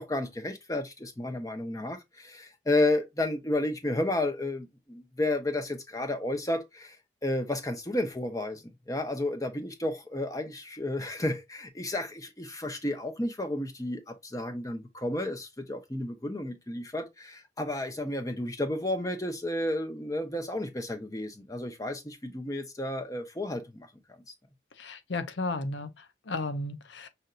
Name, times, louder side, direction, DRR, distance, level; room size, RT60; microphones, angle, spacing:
voice 1, 0.0-7.0 7.2-23.9, left 1 dB, 20° left, 0.8 m, -32 dB
voice 2, 24.7-27.1, left 2 dB, 85° left, 0.6 m, -34 dB
5.5 x 2.7 x 2.4 m
head